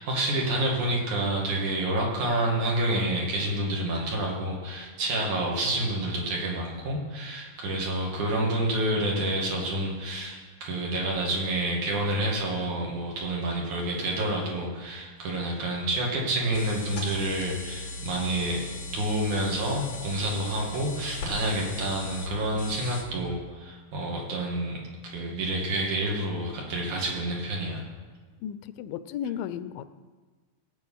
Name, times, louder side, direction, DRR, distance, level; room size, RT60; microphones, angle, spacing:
voice 1, 0.0-18.7 18.9-27.8, right 1 dB, 65° right, -2 dB, 3.5 m, -28 dB
sound 1, 16.5-23.0, left 2 dB, 60° left, 4.0 m, -38 dB
voice 2, 28.4-30.0, left 9 dB, 85° left, 13 dB, 2.3 m, -34 dB
18.5 x 7.6 x 5.7 m, 1.4 s
omnidirectional pair, 3.9 m